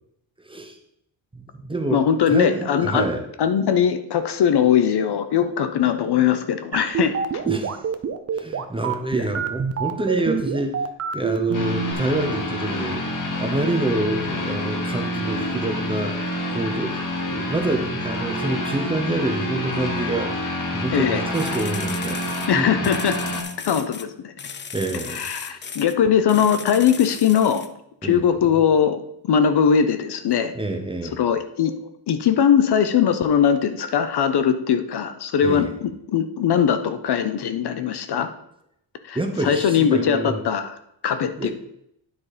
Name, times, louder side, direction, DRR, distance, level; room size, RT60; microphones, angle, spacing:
voice 1, 0.4-0.8 1.3-3.2 7.4-7.8 8.3-13.0 13.4-16.1 16.5-20.3 20.7-22.3 22.5-22.9 24.7-25.2 25.6-25.7 28.0-28.2 30.5-31.2 35.4-35.7 39.1-40.4 41.4-41.5, right 2 dB, 10° right, 3 dB, 0.9 m, -27 dB
voice 2, 1.9-3.1 3.4-7.4 20.9-21.2 22.5-23.2 23.6-24.3 25.1-27.6 28.0-30.5 31.2-31.8 32.1-38.3 39.1-40.7 41.0-41.5, left 8 dB, 60° left, 10 dB, 0.7 m, -20 dB
sound 1, 6.7-11.9, right 8 dB, 35° right, 0.6 m, -25 dB
sound 2, 11.5-23.4, left 1 dB, 45° left, 1.3 m, -28 dB
sound 3, 21.3-24.1 24.4-26.0 26.3-27.7, left 6 dB, 25° left, 0.4 m, -36 dB
9.7 x 4.1 x 4.9 m, 0.77 s
wide cardioid pair, 135°, 46 cm